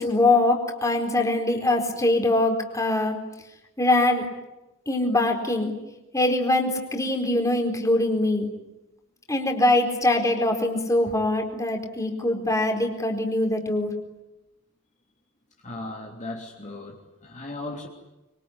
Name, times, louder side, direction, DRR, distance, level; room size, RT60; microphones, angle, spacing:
voice 1, 0.0-3.2 3.8-4.3 4.9-5.7 6.1-8.5 9.3-13.9, left 2 dB, 15° left, 3 dB, 4.3 m, -23 dB
voice 2, 15.6-17.9, left 2 dB, 35° left, 0 dB, 3.2 m, -37 dB
25.5 x 24.0 x 9.8 m, 0.97 s
head